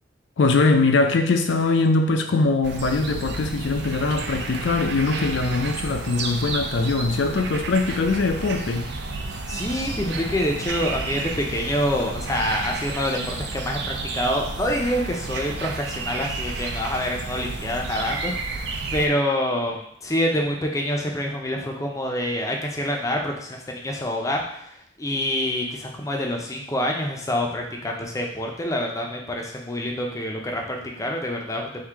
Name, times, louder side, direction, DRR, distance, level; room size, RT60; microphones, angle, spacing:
voice 1, 0.4-8.9, left 3 dB, 70° left, 6 dB, 0.5 m, -22 dB
sound 1, 2.6-19.1, right 3 dB, 60° right, 0.5 m, -31 dB
voice 2, 9.5-31.9, left 1 dB, 15° left, 1 dB, 0.5 m, -26 dB
3.7 x 2.7 x 4.5 m, 0.72 s
head